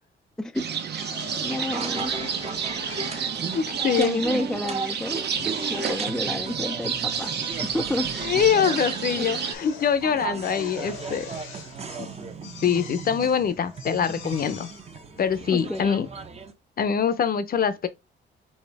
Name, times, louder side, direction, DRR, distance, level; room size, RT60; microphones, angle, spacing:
voice 1, 0.4-0.7 1.4-2.4 4.0-5.2 5.7-7.3 7.6-8.4 9.2-9.4 15.5-15.9, left 1 dB, 5° left, 0.4 m, -30 dB
sound 1, 0.5-9.5, right 7 dB, 60° right, 0.9 m, -30 dB
Drill, 1.0-16.3, left 6 dB, 85° left, 1.3 m, -44 dB
sound 2, 1.7-16.5, right 5 dB, 30° right, 0.8 m, -37 dB
voice 2, 2.9-4.2 8.2-11.3 12.0-12.1 12.6-14.7 15.2-16.1 16.8-17.9, left 7 dB, 50° left, 0.7 m, -24 dB
4.3 x 3.2 x 3.4 m
cardioid pair, 90°, 20 cm